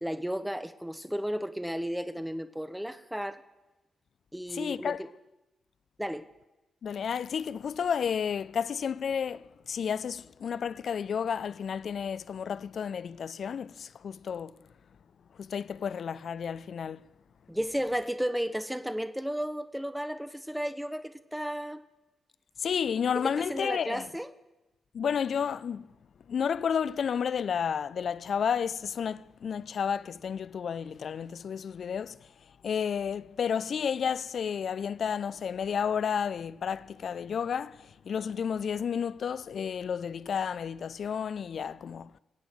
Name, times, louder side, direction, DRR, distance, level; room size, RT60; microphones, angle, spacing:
voice 1, 0.0-3.4 4.3-5.1 6.0-6.3 17.5-21.8 23.1-24.3, equal, 5° right, 1.0 m, -33 dB
voice 2, 4.5-5.0 6.8-14.5 15.4-17.1 22.6-24.1 24.9-25.9 26.3-32.2 32.6-42.1, left 7 dB, 60° left, 0.5 m, -31 dB
21.5 x 8.6 x 7.5 m
hypercardioid pair, 40°, 0 cm